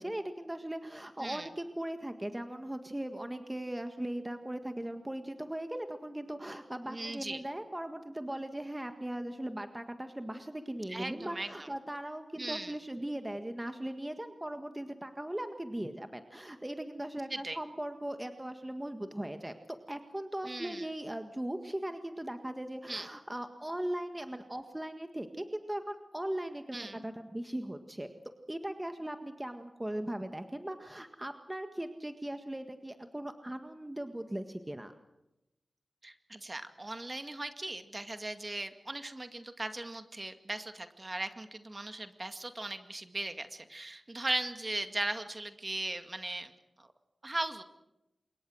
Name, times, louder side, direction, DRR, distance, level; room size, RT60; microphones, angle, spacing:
voice 1, 0.0-28.1 28.5-34.9, right 1 dB, 15° right, 7 dB, 1.7 m, -39 dB
voice 2, 6.9-7.4 10.9-11.7 12.4-12.8 17.3-17.6 20.5-20.9 22.9-23.1 26.7-27.0 36.0-46.5 46.8-46.9 47.2-47.6, right 2 dB, 35° right, 8 dB, 2.1 m, -38 dB
26.5 x 22.0 x 6.4 m, 0.93 s
cardioid pair, 45°, 0 cm